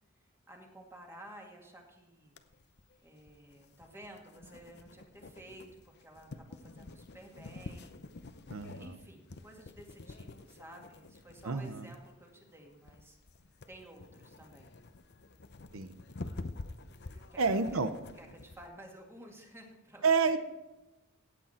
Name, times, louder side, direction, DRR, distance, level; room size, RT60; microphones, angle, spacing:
voice 1, 0.5-2.3 3.0-8.0 8.5-13.2 13.7-14.7 17.3-17.4 18.2-20.3, right 1 dB, 10° right, 1 dB, 2.0 m, -53 dB
sound 1, 2.4-18.7, left 2 dB, 50° left, 0.7 m, -48 dB
voice 2, 8.5-8.9 11.4-11.9 15.7-15.9 17.4-17.9 20.0-20.4, right 4 dB, 75° right, 10 dB, 0.8 m, -29 dB
17.0 x 8.5 x 4.3 m, 1.0 s
head